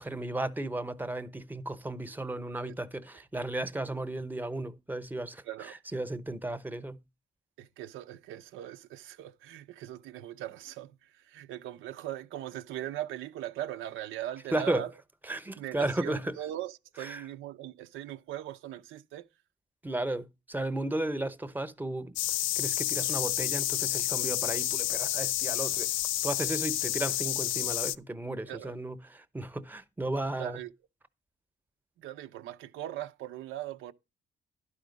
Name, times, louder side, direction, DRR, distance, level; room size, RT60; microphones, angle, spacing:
voice 1, 0.0-7.0 14.5-14.8 15.3-16.4 17.0-17.2 19.8-22.2 22.6-25.9 26.2-30.6, right 1 dB, 10° right, 0.8 m, -34 dB
voice 2, 5.4-5.7 7.6-14.9 15.6-19.3 22.6-22.7 28.5-28.8 30.4-30.7 32.0-33.9, right 13 dB, 90° right, 0.7 m, -40 dB
sound 1, 22.2-28.0, left 14 dB, 85° left, 0.4 m, -30 dB
11.5 x 5.0 x 5.1 m
cardioid pair, 90°, 20 cm